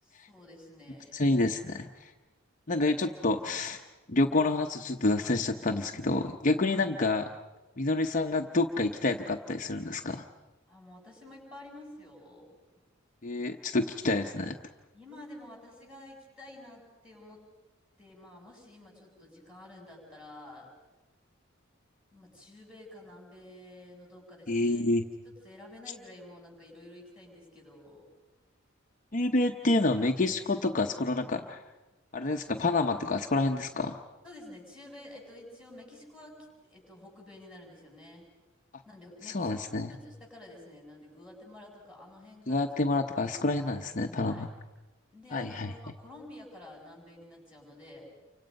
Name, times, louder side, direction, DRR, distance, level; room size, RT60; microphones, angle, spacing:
voice 1, 0.0-1.2 10.7-12.6 14.9-17.4 18.0-20.7 22.1-24.8 25.4-28.1 34.2-38.3 38.9-42.7 44.2-44.5 45.1-48.1, left 1 dB, 5° right, -1 dB, 7.5 m, -50 dB
voice 2, 1.1-2.1 2.7-3.8 4.1-7.3 7.8-10.3 13.2-14.6 24.5-25.0 29.1-31.6 32.1-34.0 39.2-39.9 42.5-44.5 45.3-45.7, left 2 dB, 40° left, 3 dB, 0.8 m, -28 dB
29.0 x 25.5 x 5.3 m, 1.2 s
head